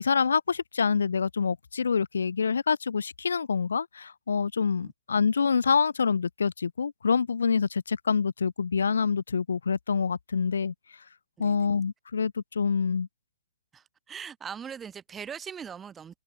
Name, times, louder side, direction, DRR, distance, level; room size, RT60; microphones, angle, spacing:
voice 1, 0.0-10.7 11.4-13.1, left 6 dB, 60° left, 0.9 m, -26 dB
voice 2, 13.7-16.2, right 7 dB, 10° right, 7.4 m, -40 dB
figure-of-eight pair, 120°, 0 cm